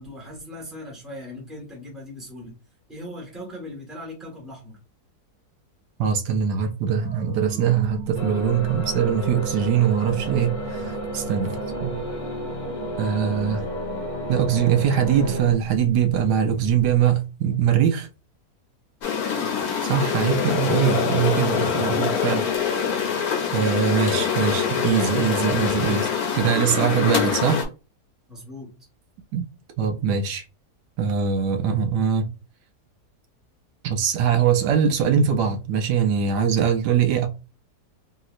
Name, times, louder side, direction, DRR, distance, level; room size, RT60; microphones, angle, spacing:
voice 1, 0.0-2.5 2.9-4.8 19.2-19.6 28.3-28.7, left 1 dB, ahead, 1.0 m, -39 dB
voice 2, 6.0-12.0 13.0-13.6 14.3-18.1 19.8-22.5 23.5-27.6 29.3-29.5 29.8-30.4 31.0-32.3 33.8-37.3, right 8 dB, 80° right, 1.1 m, -22 dB
sound 1, 7.0-17.0, right 3 dB, 60° right, 0.6 m, -38 dB
sound 2, 8.1-15.5, equal, 50° left, 0.5 m, -32 dB
sound 3, 19.0-27.7, left 7 dB, 70° left, 1.2 m, -24 dB
3.0 x 2.8 x 2.4 m
omnidirectional pair, 1.8 m